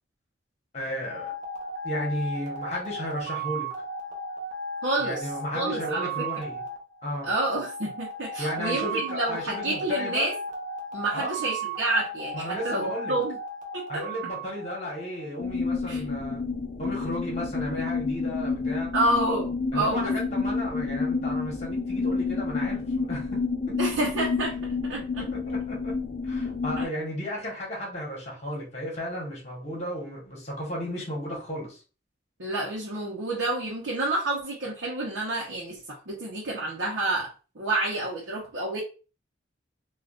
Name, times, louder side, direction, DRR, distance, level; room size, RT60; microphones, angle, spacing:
voice 1, 0.7-1.3 1.8-3.7 5.0-6.6 7.0-7.3 8.4-10.3 11.1-11.4 12.3-13.2 13.9-16.4 16.8-18.9 19.7-23.4 23.7-23.8 24.9-25.9 26.2-31.8, equal, 35° left, -3 dB, 1.4 m, -34 dB
sound 1, 1.1-15.5, right 2 dB, 40° right, 0.8 m, -35 dB
voice 2, 4.8-5.3 5.5-6.2 7.2-10.4 10.9-13.4 13.7-14.0 15.9-16.0 18.9-20.2 23.8-24.5 24.8-25.2 26.8-26.9 32.4-38.8, right 2 dB, 80° right, -4 dB, 0.8 m, -29 dB
sound 2, 15.4-26.9, left 4 dB, 60° left, 0.5 m, -29 dB
3.4 x 2.4 x 2.4 m, 0.34 s
head